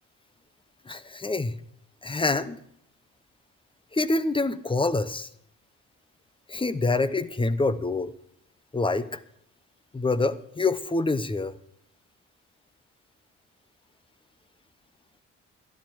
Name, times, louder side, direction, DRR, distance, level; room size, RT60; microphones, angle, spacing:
voice 1, 0.9-1.6 2.0-2.6 3.9-5.3 6.5-8.1 8.7-9.2 9.9-11.6, left 3 dB, 15° left, 14 dB, 0.8 m, -26 dB
12.0 x 11.5 x 4.7 m, 0.72 s
cardioid pair, 90°, 30 cm